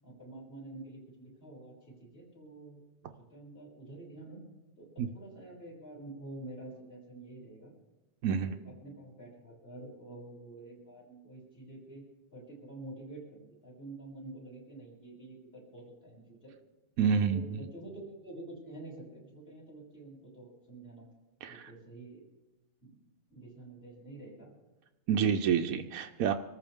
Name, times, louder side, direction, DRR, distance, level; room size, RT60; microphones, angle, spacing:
voice 1, 0.0-4.4 4.8-7.7 8.3-12.0 12.3-16.5 17.0-21.1 21.4-22.2 22.8-23.0 23.3-24.5, right 2 dB, 40° left, -4 dB, 6.7 m, -48 dB
voice 2, 8.2-8.5 17.0-17.6 21.4-21.7 25.1-26.3, right 7 dB, 70° right, 4 dB, 1.1 m, -28 dB
25.5 x 14.0 x 3.6 m, 1.1 s
omnidirectional pair, 1.6 m